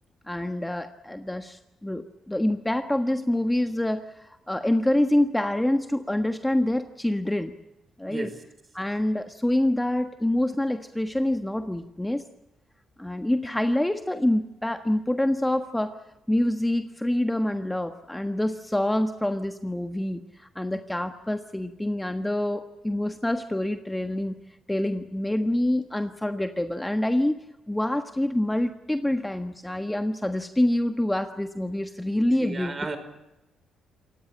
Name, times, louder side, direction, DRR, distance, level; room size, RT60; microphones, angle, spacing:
voice 1, 0.3-7.5 8.0-8.3 8.7-12.2 13.0-16.0 16.3-24.3 24.7-32.7, left 1 dB, 10° left, 8 dB, 1.4 m, -26 dB
voice 2, 8.0-8.4 32.4-33.0, right 3 dB, 30° right, 10 dB, 4.9 m, -33 dB
28.0 x 16.0 x 8.9 m, 0.96 s
cardioid pair, 90°, 0 cm